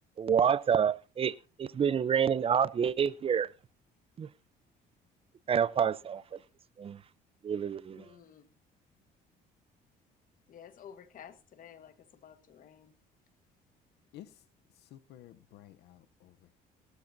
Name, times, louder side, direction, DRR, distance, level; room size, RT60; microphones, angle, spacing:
voice 1, 0.2-3.5 4.2-4.3 5.5-6.2 6.8-7.0 7.4-8.0, right 7 dB, 35° right, 0.6 m, -28 dB
voice 2, 7.9-8.5 10.5-12.9, left 8 dB, 55° left, 1.5 m, -52 dB
voice 3, 14.8-16.6, left 13 dB, 80° left, 0.8 m, -53 dB
18.0 x 13.5 x 2.7 m
cardioid pair, 110°, 17 cm